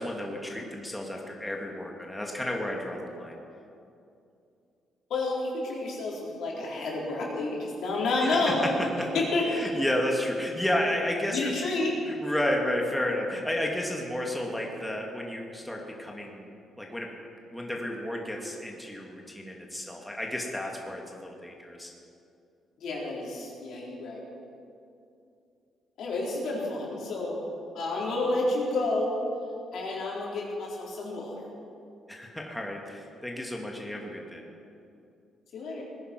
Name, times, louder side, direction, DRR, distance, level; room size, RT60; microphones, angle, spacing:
voice 1, 0.0-3.4 8.2-8.7 9.5-11.5 12.1-16.5 16.8-17.1 17.5-21.9 32.1-34.4, left 1 dB, 5° left, 0 dB, 2.0 m, -32 dB
voice 2, 5.1-8.6 9.1-9.7 11.3-11.9 22.8-24.2 26.0-27.4 27.7-29.2 29.7-31.5 35.5-35.9, left 2 dB, 70° left, -3 dB, 4.2 m, -30 dB
19.5 x 10.0 x 6.1 m, 2.6 s
cardioid pair, 90°, 0 cm